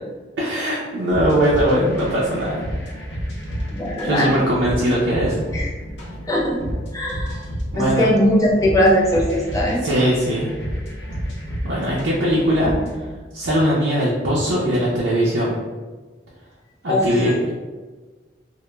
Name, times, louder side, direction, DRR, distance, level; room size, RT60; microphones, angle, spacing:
voice 1, 0.4-2.6 4.0-5.4 7.7-8.1 9.8-10.5 11.6-12.7 13.3-15.6 16.8-17.3, equal, 80° right, -6 dB, 0.5 m, -20 dB
sound 1, 1.1-13.1, equal, 65° left, 0.8 m, -30 dB
voice 2, 3.7-4.5 5.5-5.7 6.3-6.6 6.9-7.4 7.7-9.9 16.9-17.3, equal, 20° left, -4 dB, 0.5 m, -19 dB
2.2 x 2.1 x 3.0 m, 1.4 s
head